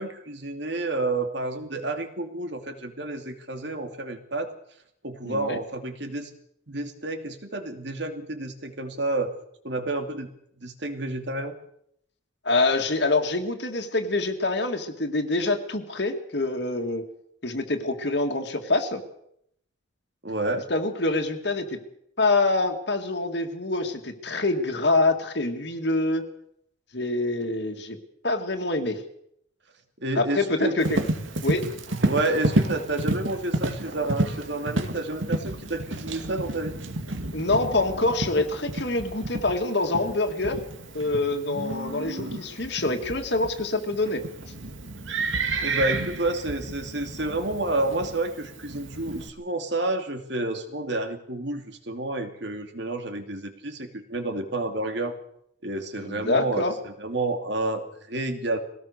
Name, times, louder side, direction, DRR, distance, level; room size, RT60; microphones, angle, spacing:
voice 1, 0.0-4.5 5.0-6.3 6.7-9.3 9.6-10.3 10.6-11.5 20.2-20.7 30.0-30.7 32.0-36.8 45.6-55.1 55.6-58.6, right 2 dB, 60° right, 6 dB, 2.7 m, -30 dB
voice 2, 5.2-5.6 12.4-17.0 17.4-19.0 20.7-21.8 22.2-26.2 26.9-28.0 28.2-29.0 30.2-31.0 31.4-31.6 37.3-40.6 40.9-44.2 56.0-56.7, left 2 dB, 60° left, 4 dB, 2.1 m, -25 dB
Livestock farm animals working animals, 30.8-49.3, right 2 dB, 75° right, 2.2 m, -31 dB
22.0 x 18.0 x 6.7 m, 0.72 s
head